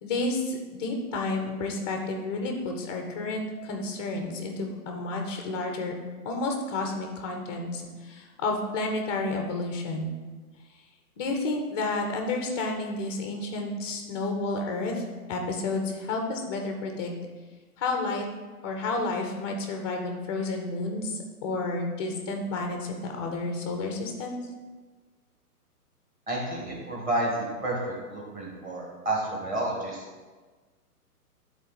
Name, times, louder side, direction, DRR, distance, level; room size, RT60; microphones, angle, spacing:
voice 1, 0.0-5.9 6.2-10.2 11.2-17.1 17.8-18.3 18.6-24.4, left 2 dB, 20° left, 2 dB, 0.4 m, -31 dB
voice 2, 26.3-27.8 28.1-30.0, right 1 dB, 20° right, -3 dB, 1.7 m, -30 dB
10.0 x 4.1 x 4.0 m, 1.3 s
hypercardioid pair, 135°, 46 cm